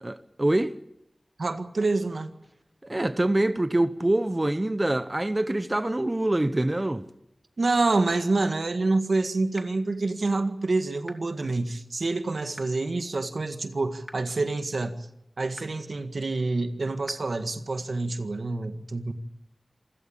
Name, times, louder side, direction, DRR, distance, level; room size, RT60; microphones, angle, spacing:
voice 1, 0.0-0.7 2.8-7.0, right 1 dB, 30° right, 1.1 m, -25 dB
voice 2, 1.4-2.3 7.6-15.0 15.4-19.1, right 3 dB, 80° right, 1.8 m, -27 dB
sound 1, 8.0-8.1 9.5-9.6 11.0-11.1 12.5-12.6 14.0-14.1 15.5-15.6 17.0-17.1, equal, 5° right, 2.5 m, -42 dB
27.0 x 16.5 x 8.8 m
wide cardioid pair, 50°, 0 cm